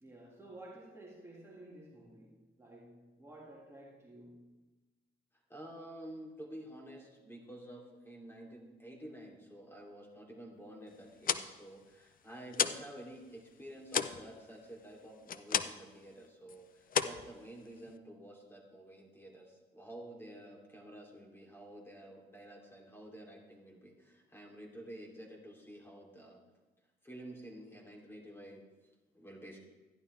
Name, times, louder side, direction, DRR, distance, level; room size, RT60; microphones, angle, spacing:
voice 1, 0.0-4.6, right 1 dB, 15° right, -4 dB, 1.9 m, -53 dB
voice 2, 5.5-26.4 27.0-28.6 29.1-29.6, right 1 dB, 10° left, 0 dB, 2.9 m, -50 dB
sound 1, 11.0-12.9 13.2-15.9 16.2-16.6 16.9-18.0, left 7 dB, 45° left, 0.6 m, -34 dB
13.0 x 11.0 x 3.3 m, 1.2 s
cardioid pair, 90°, 20 cm